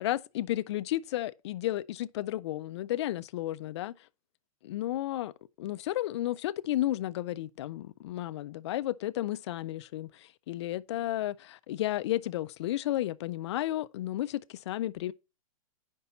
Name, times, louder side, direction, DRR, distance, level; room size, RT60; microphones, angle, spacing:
voice 1, 0.0-3.9 4.6-5.3 5.6-15.1, left 14 dB, 50° left, 0.4 m, -33 dB
6.9 x 5.3 x 4.2 m
hypercardioid pair, 160°, 18 cm